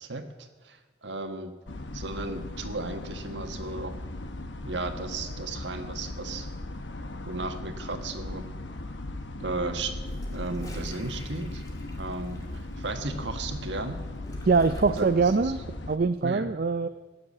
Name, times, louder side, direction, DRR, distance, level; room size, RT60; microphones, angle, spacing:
voice 1, 0.0-1.5 1.9-3.9 4.6-6.5 7.2-8.5 9.4-9.9 10.3-11.6 12.0-14.0 15.0-15.1 15.4-15.5 16.2-16.5, right 3 dB, 80° right, 7 dB, 1.4 m, -35 dB
sound 1, 1.7-16.0, left 1 dB, 85° left, 1.1 m, -37 dB
Gurgling / Toilet flush, 10.0-15.4, equal, 20° left, 2.3 m, -50 dB
voice 2, 14.4-15.6 15.9-16.9, right 4 dB, 50° right, 11 dB, 0.4 m, -23 dB
17.5 x 7.0 x 8.4 m, 1.3 s
head